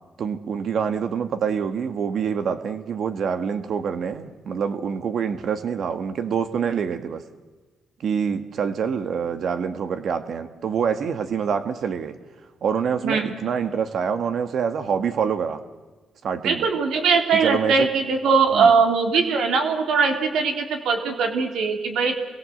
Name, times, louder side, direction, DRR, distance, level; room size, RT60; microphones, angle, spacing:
voice 1, 0.2-7.2 8.0-12.2 12.6-15.6 16.2-16.7 17.3-17.9 18.5-18.8, right 7 dB, 65° right, 9 dB, 1.7 m, -26 dB
voice 2, 16.4-22.1, right 5 dB, 85° right, 4 dB, 3.5 m, -20 dB
29.0 x 22.0 x 7.9 m, 1.3 s
cardioid pair, 90°, 0 cm